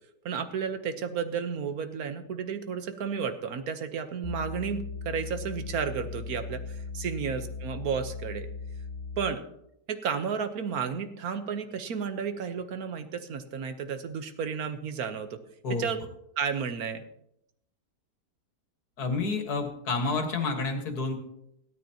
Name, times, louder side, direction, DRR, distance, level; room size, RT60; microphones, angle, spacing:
voice 1, 0.2-8.5 9.2-9.4 9.9-15.4 15.7-16.0 16.4-17.0, right 6 dB, 65° right, 9 dB, 1.4 m, -32 dB
sound 1, 4.2-9.5, left 4 dB, 50° left, 1.9 m, -38 dB
voice 2, 19.0-21.2, left 3 dB, 65° left, 4 dB, 2.2 m, -29 dB
17.0 x 12.5 x 2.9 m, 0.77 s
omnidirectional pair, 1.8 m